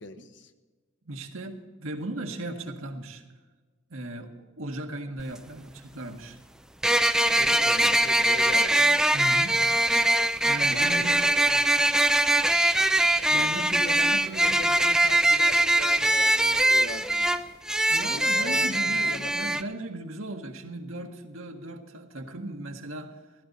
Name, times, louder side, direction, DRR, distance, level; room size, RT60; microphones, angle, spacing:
voice 1, 0.0-0.5 7.4-9.1 10.7-11.7 13.3-17.5 18.1-19.6, left 2 dB, 60° left, 7 dB, 1.1 m, -40 dB
voice 2, 1.0-3.2 3.9-6.4 9.1-9.6 10.4-11.2 13.3-13.8 14.1-14.6 17.9-23.2, right 1 dB, 90° right, 4 dB, 1.7 m, -37 dB
sound 1, 5.2-5.3 6.8-19.6, right 1 dB, 5° right, 0.4 m, -22 dB
15.5 x 14.5 x 4.2 m, 1.3 s
head